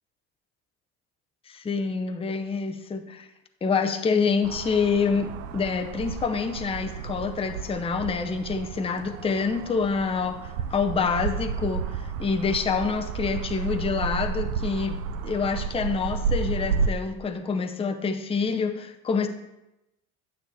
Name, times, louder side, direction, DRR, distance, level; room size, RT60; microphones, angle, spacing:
voice 1, 1.5-3.3 3.6-14.9 15.2-19.3, left 5 dB, 15° left, 6 dB, 0.6 m, -27 dB
sound 1, 4.4-16.9, right 6 dB, 80° right, 0.6 m, -32 dB
9.2 x 6.7 x 3.4 m, 0.91 s
supercardioid pair, 85°, 45 cm